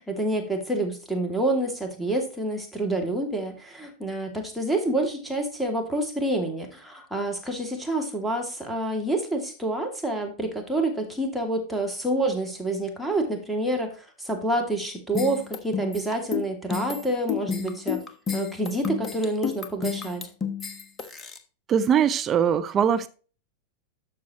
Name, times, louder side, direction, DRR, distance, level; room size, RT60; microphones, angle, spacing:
voice 1, 0.0-18.0 18.3-20.3, right 1 dB, ahead, 1 dB, 2.5 m, -28 dB
sound 1, 15.1-21.4, left 7 dB, 20° left, 1.4 m, -31 dB
voice 2, 21.7-23.1, right 8 dB, 25° right, 12 dB, 0.7 m, -21 dB
12.5 x 7.6 x 3.0 m, 0.37 s
figure-of-eight pair, 90°, 0 cm